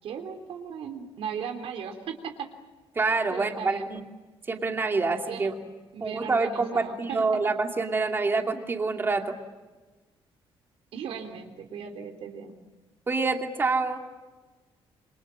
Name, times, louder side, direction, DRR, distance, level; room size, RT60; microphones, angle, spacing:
voice 1, 0.0-2.5 3.3-3.9 5.3-5.5 5.9-7.2 10.9-12.6, right 7 dB, 70° right, 5 dB, 3.3 m, -37 dB
voice 2, 2.9-4.0 4.5-5.5 6.0-9.4 13.1-14.0, right 3 dB, 20° right, 4 dB, 2.6 m, -26 dB
28.0 x 26.5 x 7.5 m, 1.3 s
cardioid pair, 175°, 10 cm